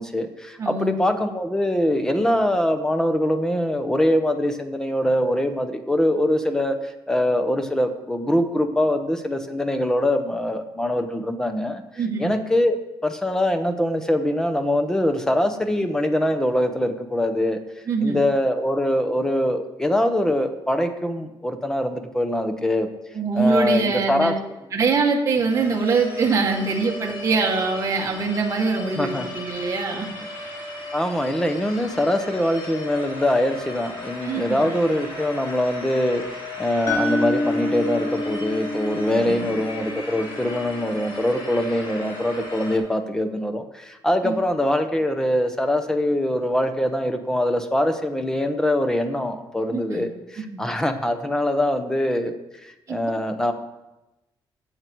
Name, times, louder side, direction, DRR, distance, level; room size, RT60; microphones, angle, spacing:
voice 1, 0.0-11.8 12.2-17.6 18.0-22.9 23.3-24.3 25.4-25.8 29.0-29.3 30.9-52.3 52.6-53.5, left 1 dB, 5° left, 7 dB, 0.9 m, -23 dB
voice 2, 0.6-0.9 12.0-12.3 17.9-18.2 23.1-24.3 24.7-30.1 34.2-34.7 39.1-39.5 44.2-44.4 49.7-50.0 50.5-50.6 52.9-53.0, right 4 dB, 35° right, 0 dB, 1.9 m, -23 dB
sound 1, 25.5-42.8, left 2 dB, 65° left, 4.0 m, -36 dB
sound 2, 36.9-40.9, left 2 dB, 35° left, 2.1 m, -28 dB
16.5 x 7.6 x 4.7 m, 0.97 s
wide cardioid pair, 170°, 9 cm